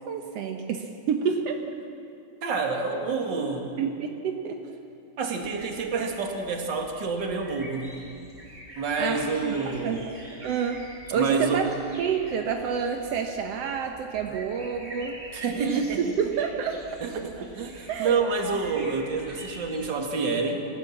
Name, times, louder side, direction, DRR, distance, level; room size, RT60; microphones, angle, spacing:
voice 1, 0.1-1.6 3.8-4.6 5.6-5.7 7.3-7.4 9.0-10.0 10.4-10.8 11.1-11.7 12.0-15.2 15.6-15.9 16.2-16.9 17.4-17.5 17.9-18.6, right 6 dB, 80° right, 4 dB, 1.4 m, -29 dB
voice 2, 2.4-3.8 5.2-8.0 8.8-10.1 11.1-11.7 15.3-16.0 17.0-20.6, right 4 dB, 40° right, 3 dB, 1.9 m, -28 dB
sound 1, 5.4-19.9, right 1 dB, 15° right, 4.0 m, -46 dB
29.0 x 15.5 x 7.3 m, 2.8 s
omnidirectional pair, 4.3 m